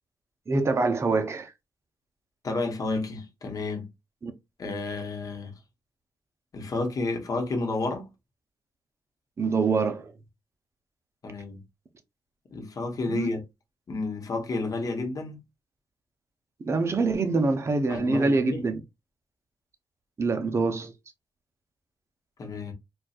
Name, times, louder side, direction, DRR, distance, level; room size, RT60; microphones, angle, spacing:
voice 1, 0.5-1.5 4.2-4.3 9.4-10.1 13.1-13.3 16.6-18.8 20.2-20.9, right 3 dB, 35° right, 0.6 m, -25 dB
voice 2, 2.4-3.8 4.6-5.5 6.5-8.1 11.2-11.6 12.5-13.4 13.9-15.4 17.9-18.6 22.4-22.7, left 3 dB, 50° left, 1.0 m, -31 dB
4.1 x 2.4 x 2.4 m
cardioid pair, 100°, 8 cm